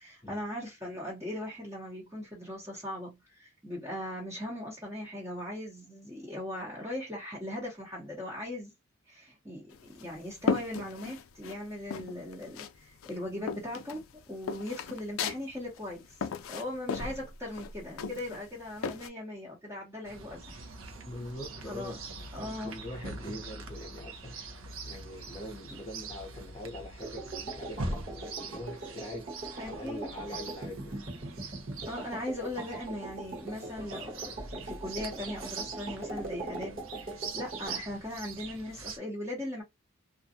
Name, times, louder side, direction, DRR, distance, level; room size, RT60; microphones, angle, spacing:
voice 1, 0.0-8.7 9.1-16.0 16.5-20.6 21.7-22.0 22.3-22.7 29.6-30.4 31.9-39.6, left 1 dB, 15° right, 0.8 m, -39 dB
sound 1, 9.7-11.6 11.9-12.8 13.0-19.1, left 5 dB, 85° left, 0.4 m, -36 dB
Chirp tweet, 20.0-39.0, right 3 dB, 80° right, 0.7 m, -43 dB
voice 2, 21.0-22.0 22.4-24.4 24.8-29.4 29.6-31.0, left 1 dB, 20° left, 0.7 m, -43 dB
sound 2, 27.0-37.8, right 2 dB, 45° right, 1.1 m, -41 dB
2.5 x 2.2 x 2.6 m
head